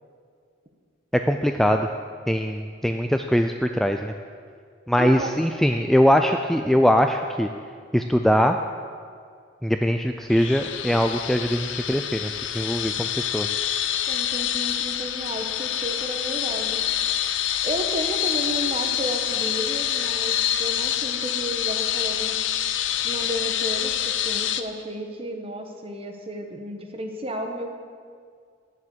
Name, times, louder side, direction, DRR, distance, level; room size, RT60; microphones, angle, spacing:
voice 1, 1.1-1.9 2.3-4.1 4.9-7.5 7.9-8.6 9.6-13.5, equal, ahead, 5 dB, 0.3 m, -22 dB
voice 2, 5.0-5.3 14.1-16.8 17.6-22.4 23.0-27.8, equal, 30° right, 3 dB, 1.2 m, -32 dB
sound 1, 10.3-24.6, left 10 dB, 85° left, 0.6 m, -26 dB
11.0 x 7.3 x 7.9 m, 2.1 s
head